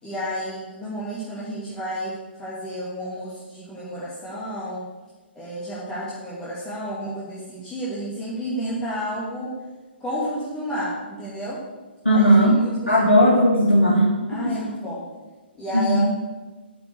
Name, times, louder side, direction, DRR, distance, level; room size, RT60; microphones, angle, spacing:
voice 1, 0.0-2.1 2.4-4.9 5.3-9.5 10.0-11.6 12.1-13.0 14.3-15.0 15.6-16.1, equal, 15° left, -9 dB, 2.5 m, -31 dB
voice 2, 12.0-12.5 12.9-14.1 14.4-14.5 15.7-16.0, equal, 80° left, -6 dB, 2.6 m, -16 dB
8.7 x 6.0 x 8.2 m, 1.2 s
figure-of-eight pair, 125°, 6 cm